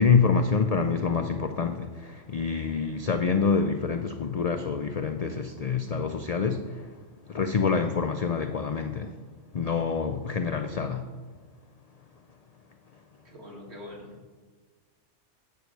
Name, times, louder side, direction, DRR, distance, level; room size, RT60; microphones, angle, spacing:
voice 1, 0.0-6.8 7.3-9.1 9.5-11.1, left 5 dB, 65° left, 7 dB, 0.4 m, -26 dB
voice 2, 13.2-14.3, left 1 dB, 65° right, -1 dB, 2.0 m, -44 dB
9.4 x 4.7 x 6.5 m, 1.4 s
omnidirectional pair, 1.2 m